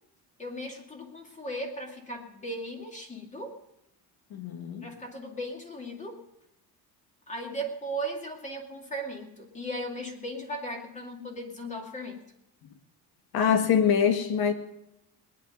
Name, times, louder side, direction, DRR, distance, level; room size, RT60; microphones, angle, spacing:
voice 1, 0.4-3.6 4.8-6.2 7.3-12.2, right 1 dB, 20° left, 2 dB, 2.4 m, -37 dB
voice 2, 4.3-4.9 13.3-14.5, left 7 dB, 70° left, 8 dB, 1.8 m, -24 dB
19.5 x 10.0 x 5.3 m, 0.85 s
cardioid pair, 145°, 39 cm